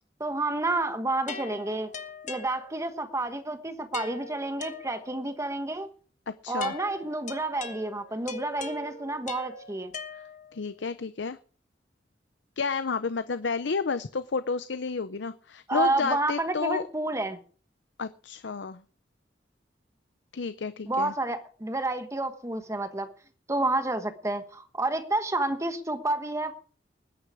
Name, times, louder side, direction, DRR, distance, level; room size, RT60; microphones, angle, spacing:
voice 1, 0.2-1.9 2.2-5.9 6.5-9.9 15.7-17.4 20.9-23.1 23.5-26.5, right 2 dB, 15° right, 1.2 m, -30 dB
sound 1, 1.3-3.1 3.9-5.4 6.6-10.7, left 4 dB, 40° left, 1.4 m, -41 dB
voice 2, 6.3-6.8 10.5-11.4 12.6-16.8 18.0-18.8 20.3-21.1, left 4 dB, 75° left, 0.6 m, -31 dB
20.0 x 9.9 x 4.8 m
head